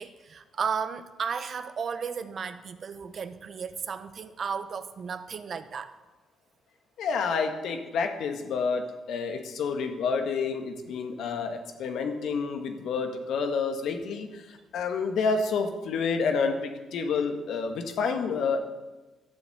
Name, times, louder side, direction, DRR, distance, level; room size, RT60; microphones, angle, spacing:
voice 1, 0.0-5.9, right 6 dB, 50° right, 0.9 m, -34 dB
voice 2, 7.0-18.6, left 5 dB, 75° left, 1.7 m, -29 dB
12.0 x 7.2 x 8.1 m
cardioid pair, 90°, 0 cm